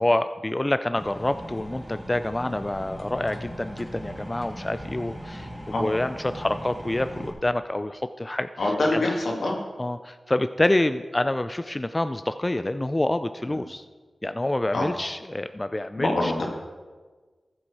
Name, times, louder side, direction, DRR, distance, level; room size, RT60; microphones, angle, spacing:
voice 1, 0.0-5.5 5.8-8.5 9.8-13.8 14.2-16.3, left 1 dB, 25° left, 11 dB, 0.4 m, -27 dB
sound 1, 1.0-7.3, equal, ahead, 2.9 m, -39 dB
voice 2, 8.6-9.6 13.5-13.6 14.7-14.9 16.0-16.5, left 2 dB, 85° left, 0 dB, 2.1 m, -25 dB
14.0 x 7.5 x 4.8 m, 1.4 s
cardioid pair, 55°, 0 cm